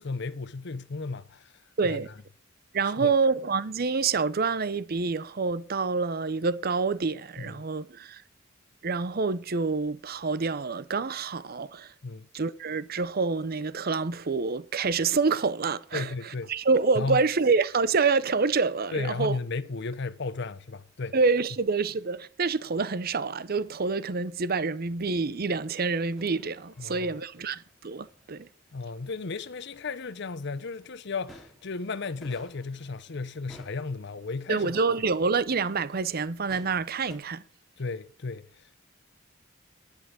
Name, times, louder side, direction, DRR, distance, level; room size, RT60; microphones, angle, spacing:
voice 1, 0.0-2.0 3.0-3.2 7.4-7.6 12.0-12.3 15.9-16.5 17.0-17.2 18.9-21.2 26.8-27.2 28.7-34.7 37.8-38.8, left 4 dB, 60° left, 0.7 m, -34 dB
voice 2, 1.8-2.1 2.7-8.2 8.8-11.9 12.3-19.4 21.1-28.5 34.5-37.4, right 4 dB, 50° right, 0.7 m, -27 dB
sound 1, 26.2-37.2, equal, ahead, 2.7 m, -57 dB
11.5 x 9.9 x 6.1 m
head